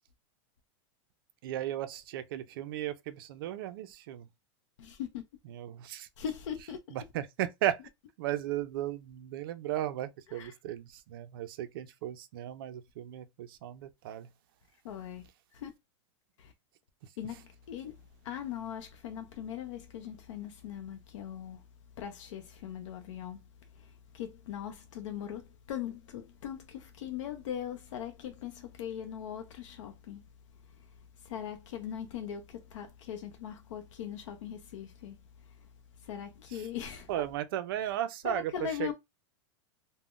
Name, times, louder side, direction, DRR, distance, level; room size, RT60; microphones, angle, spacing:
voice 1, 1.4-4.3 5.5-6.1 6.9-7.8 8.2-14.3 17.0-17.1 36.5-36.7 37.1-38.9, right 12 dB, 50° right, 0.4 m, -35 dB
voice 2, 4.8-5.2 6.2-7.0 10.3-10.5 14.8-15.7 16.4-16.5 17.2-21.6 22.0-30.2 30.7-37.1 38.2-38.9, left 9 dB, 80° left, 0.5 m, -40 dB
3.6 x 2.1 x 2.3 m
supercardioid pair, 175°, 16 cm